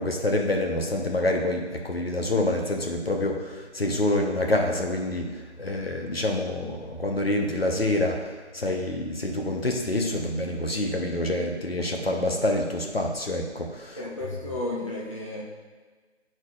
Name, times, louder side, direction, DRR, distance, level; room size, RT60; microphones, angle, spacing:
voice 1, 0.0-14.0, left 1 dB, 60° left, 2 dB, 0.9 m, -27 dB
voice 2, 14.0-15.4, left 2 dB, 30° left, -5 dB, 0.7 m, -33 dB
10.5 x 4.4 x 2.4 m, 1.4 s
figure-of-eight pair, 165°, 35 cm